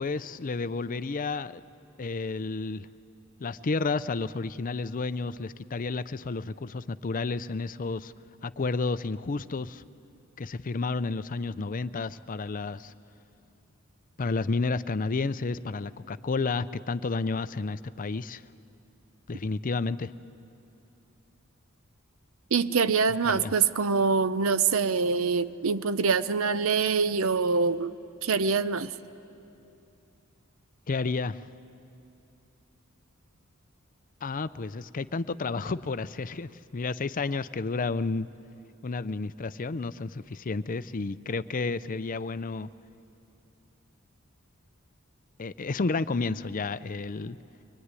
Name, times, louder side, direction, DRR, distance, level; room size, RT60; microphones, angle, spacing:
voice 1, 0.0-1.6 2.0-2.9 3.4-8.1 8.4-9.8 10.4-12.9 14.2-18.4 19.3-20.1 23.3-23.5 30.9-31.4 34.2-38.3 38.8-42.7 45.4-47.4, left 3 dB, 40° left, 14 dB, 0.5 m, -31 dB
voice 2, 22.5-27.9 28.2-28.9, right 5 dB, 80° right, 14 dB, 0.7 m, -25 dB
23.5 x 22.5 x 9.7 m, 2.7 s
head